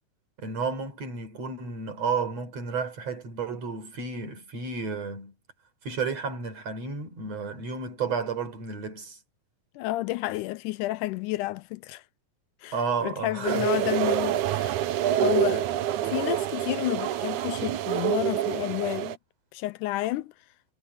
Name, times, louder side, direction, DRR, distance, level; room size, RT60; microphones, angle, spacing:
voice 1, 0.4-5.3 5.8-9.2 12.7-13.7, right 5 dB, 45° right, 5.4 m, -32 dB
voice 2, 9.8-12.0 12.6-12.8 13.0-14.8 15.2-15.7 16.0-19.2 19.5-20.3, left 17 dB, 80° left, 1.8 m, -30 dB
sound 1, 13.5-19.2, right 12 dB, 70° right, 2.1 m, -27 dB
omnidirectional pair, 4.0 m